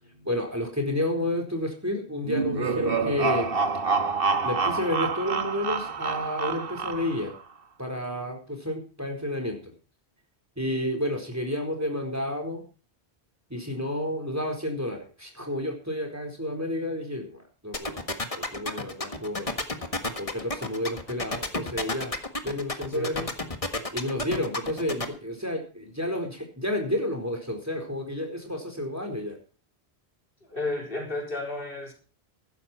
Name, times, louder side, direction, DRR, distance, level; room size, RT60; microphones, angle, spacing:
voice 1, 0.0-3.5 4.4-7.4 7.8-9.7 10.6-12.6 13.5-18.0 18.3-19.5 20.2-22.1 22.4-23.3 23.9-29.4, left 1 dB, 15° right, 3 dB, 4.4 m, -30 dB
sound 1, 2.2-7.4, right 4 dB, 60° right, 1.5 m, -27 dB
sound 2, 17.7-25.0, left 2 dB, 35° left, 1.7 m, -30 dB
voice 2, 30.4-31.9, left 2 dB, 60° left, 1 dB, 4.4 m, -32 dB
15.0 x 12.5 x 4.4 m, 0.37 s
omnidirectional pair, 1.1 m